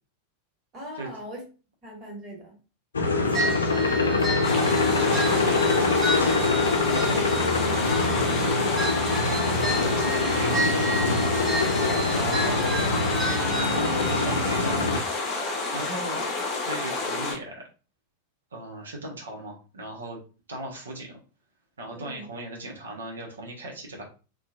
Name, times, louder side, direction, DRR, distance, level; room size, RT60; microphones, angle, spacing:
voice 1, 0.7-1.4 1.8-2.5 16.1-16.2 21.9-22.2, equal, 30° right, -1 dB, 1.2 m, -40 dB
sound 1, 2.9-15.0, left 3 dB, 70° left, 0.4 m, -24 dB
voice 2, 2.9-4.6 5.0-6.6 7.2-8.9 9.5-14.9 15.2-16.2 16.6-17.6 18.5-20.2 20.5-21.2 21.8-24.0, right 1 dB, 70° right, 0 dB, 0.7 m, -39 dB
sound 2, 3.3-14.7, equal, 15° right, 0.9 m, -32 dB
sound 3, 4.4-17.4, left 3 dB, 35° left, 0.7 m, -29 dB
2.7 x 2.3 x 2.3 m, 0.35 s
figure-of-eight pair, 90°, 0 cm